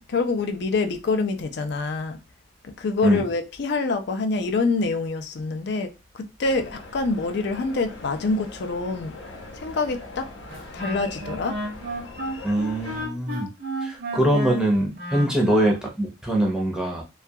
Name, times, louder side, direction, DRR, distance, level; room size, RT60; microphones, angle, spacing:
voice 1, 0.1-2.2 2.6-9.2 9.5-10.3 10.7-11.6, left 3 dB, 65° left, 0.4 m, -26 dB
sound 1, 6.4-13.1, left 2 dB, 80° left, 0.8 m, -41 dB
Wind instrument woodwind instrument, 10.5-15.8, right 1 dB, 55° right, 0.7 m, -33 dB
voice 2, 12.4-13.5 13.8-17.0, right 1 dB, 5° right, 0.6 m, -23 dB
2.3 x 2.2 x 2.7 m
head